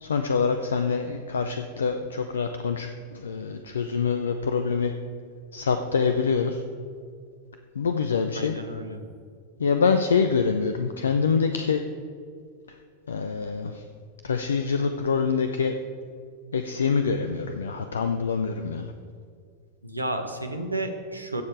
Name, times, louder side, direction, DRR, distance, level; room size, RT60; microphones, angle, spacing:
voice 1, 0.0-4.9 5.5-6.6 7.8-8.5 9.6-11.8 13.1-13.8 14.2-15.7 16.5-18.9, left 5 dB, 70° left, 7 dB, 0.6 m, -25 dB
voice 2, 8.3-9.0 19.8-21.4, right 1 dB, 85° right, 5 dB, 1.1 m, -32 dB
16.5 x 6.6 x 4.7 m, 2.2 s
figure-of-eight pair, 90°, 0 cm